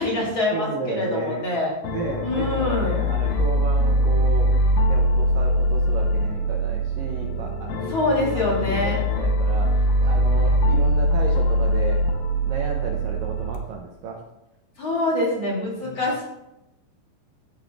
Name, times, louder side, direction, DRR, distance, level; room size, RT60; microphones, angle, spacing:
voice 1, 0.0-1.7 2.2-3.0 7.9-9.0 14.8-16.2, left 2 dB, 40° left, -3 dB, 2.4 m, -24 dB
voice 2, 0.5-1.4 1.9-4.5 4.9-12.0 12.5-14.2 15.8-16.0, right 3 dB, 70° right, -1 dB, 2.2 m, -33 dB
sound 1, 1.8-13.6, equal, 75° left, 2.4 m, -22 dB
15.5 x 5.4 x 3.5 m, 0.90 s
omnidirectional pair, 4.8 m